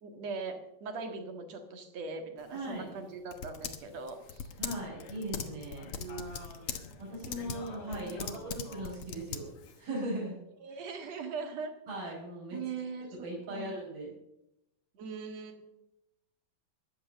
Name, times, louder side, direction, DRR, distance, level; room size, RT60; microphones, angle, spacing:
voice 1, 0.0-4.5 5.9-6.8 7.2-7.3 8.0-8.4 10.6-11.7 12.0-12.1 12.5-13.2 13.5-13.7 14.9-15.7, right 4 dB, 55° right, 6 dB, 2.7 m, -41 dB
Typing, 2.4-9.8, left 7 dB, 65° left, 1.4 m, -42 dB
voice 2, 2.5-2.9 4.6-5.9 7.0-9.5 9.8-10.4 10.7-10.8 11.9-12.6 13.2-14.1, right 1 dB, 85° right, -7 dB, 6.6 m, -38 dB
15.0 x 11.0 x 6.5 m, 0.84 s
omnidirectional pair, 4.2 m